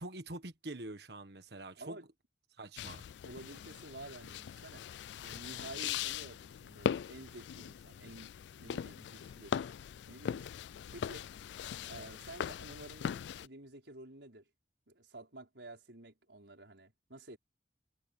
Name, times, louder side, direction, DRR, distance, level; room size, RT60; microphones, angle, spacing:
voice 1, 0.0-2.0 2.6-3.0, right 2 dB, 65° right, 1.6 m, -45 dB
voice 2, 1.8-2.1 2.8-2.9 3.2-5.0 5.2-9.6 10.1-10.5 10.9-11.3 11.9-14.5 14.9-17.4, right 2 dB, 80° right, 4.9 m, -51 dB
sound 1, 2.8-13.5, left 8 dB, 75° left, 0.3 m, -40 dB
head